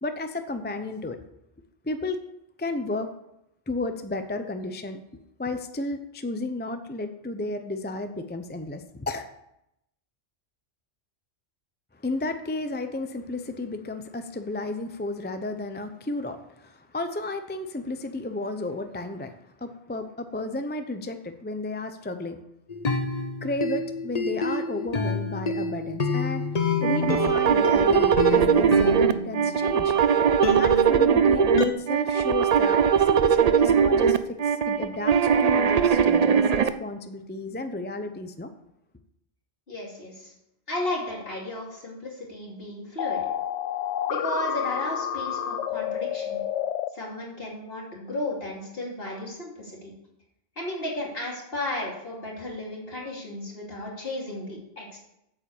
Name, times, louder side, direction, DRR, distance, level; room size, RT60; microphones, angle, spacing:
voice 1, 0.0-1.2 1.8-2.2 2.6-3.1 3.7-5.0 5.4-9.2 12.0-22.4 23.4-26.4 26.8-30.0 30.6-38.5, left 2 dB, 10° left, 8 dB, 0.5 m, -33 dB
sound 1, 22.7-30.0 30.4-31.7, left 3 dB, 40° left, 1.0 m, -28 dB
sound 2, 26.8-36.7, right 7 dB, 50° right, 0.5 m, -20 dB
voice 2, 39.7-40.3 40.7-43.2 44.1-46.4 46.9-49.9 50.6-55.0, left 1 dB, 60° left, -2 dB, 3.0 m, -34 dB
sound 3, 43.0-46.9, left 10 dB, 90° left, 0.9 m, -29 dB
8.5 x 7.6 x 7.1 m, 0.82 s
omnidirectional pair, 1.1 m